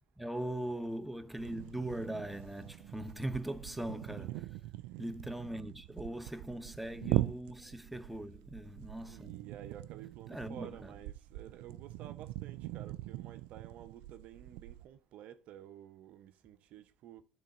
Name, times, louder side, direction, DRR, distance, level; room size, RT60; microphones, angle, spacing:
voice 1, 0.2-4.6 5.0-9.4 10.3-10.9, right 1 dB, 5° right, 0.9 m, -40 dB
sound 1, 1.4-14.9, right 17 dB, 90° right, 0.3 m, -41 dB
voice 2, 4.1-4.5 9.0-17.2, right 10 dB, 70° right, 0.8 m, -52 dB
10.5 x 3.9 x 5.4 m
supercardioid pair, 80°, 2 cm